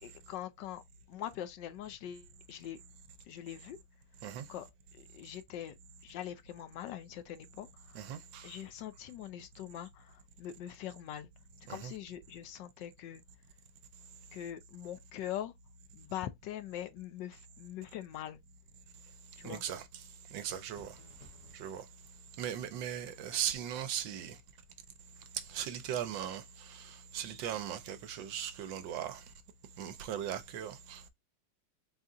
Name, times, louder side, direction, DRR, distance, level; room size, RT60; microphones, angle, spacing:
voice 1, 0.0-0.8 1.1-2.8 3.3-3.8 4.5-5.7 6.0-8.0 8.4-11.3 11.7-13.2 14.3-15.5 15.9-18.4 19.4-19.6, left 11 dB, 70° left, 1.2 m, -43 dB
voice 2, 7.9-8.5 11.7-11.9 19.4-19.8 20.3-20.9 21.5-21.8 22.4-24.4 25.5-29.2 29.8-31.1, right 9 dB, 75° right, 1.3 m, -38 dB
sound 1, 20.7-21.6, left 2 dB, 50° left, 1.4 m, -56 dB
4.2 x 2.4 x 3.7 m
omnidirectional pair, 2.1 m